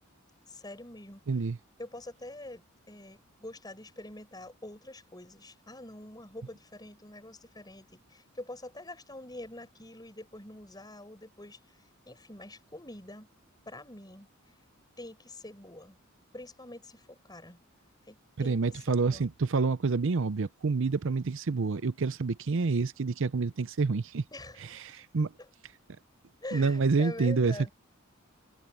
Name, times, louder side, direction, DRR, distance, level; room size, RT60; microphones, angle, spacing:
voice 1, 0.5-1.2 1.8-13.3 13.7-14.3 15.0-16.0 16.3-17.6 18.0-19.3 24.3-25.0 25.4-25.5 26.4-27.7, left 1 dB, 20° left, 6.5 m, -45 dB
voice 2, 1.3-1.6 18.4-24.2 24.7-25.3 26.5-27.7, right 4 dB, 60° right, 0.6 m, -28 dB
head